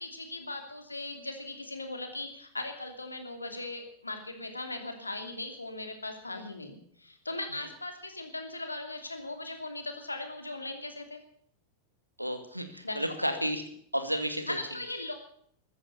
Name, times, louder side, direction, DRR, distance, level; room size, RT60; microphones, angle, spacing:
voice 1, 0.0-11.2 12.8-13.4 14.5-15.1, left 2 dB, 80° left, 6 dB, 2.8 m, -39 dB
voice 2, 12.2-13.6 13.9-14.6, equal, 90° right, 8 dB, 2.2 m, -32 dB
14.5 x 13.5 x 6.7 m, 0.63 s
figure-of-eight pair, 90°, 0 cm